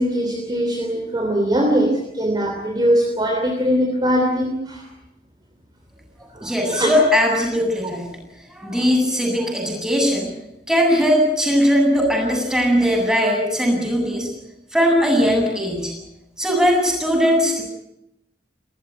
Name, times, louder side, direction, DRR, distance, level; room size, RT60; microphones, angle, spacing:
voice 1, 0.0-4.8 6.3-6.9, equal, 25° right, 2 dB, 3.1 m, -21 dB
voice 2, 6.4-8.1 8.5-10.3 10.7-14.3 14.7-15.9 16.4-17.6, equal, 5° right, 1 dB, 7.9 m, -19 dB
29.0 x 15.0 x 9.4 m, 0.86 s
head